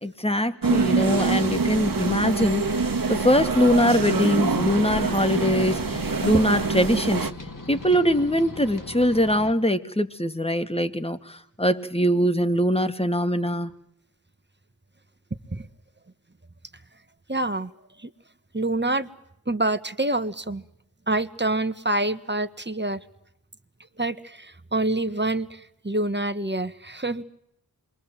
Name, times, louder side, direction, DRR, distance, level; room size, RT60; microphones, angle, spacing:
voice 1, 0.0-7.3 7.7-13.7, equal, 15° left, 9 dB, 2.0 m, -23 dB
sound 1, 0.6-7.3, right 4 dB, 55° right, 1.6 m, -25 dB
sound 2, 4.4-9.5, left 2 dB, 55° left, 2.7 m, -40 dB
voice 2, 17.3-17.7 18.0-18.1 18.5-19.1 19.5-20.6 21.1-23.0 24.0-27.2, right 2 dB, 25° right, 10 dB, 1.7 m, -26 dB
27.5 x 23.5 x 7.7 m, 0.77 s
wide cardioid pair, 40°, 40 cm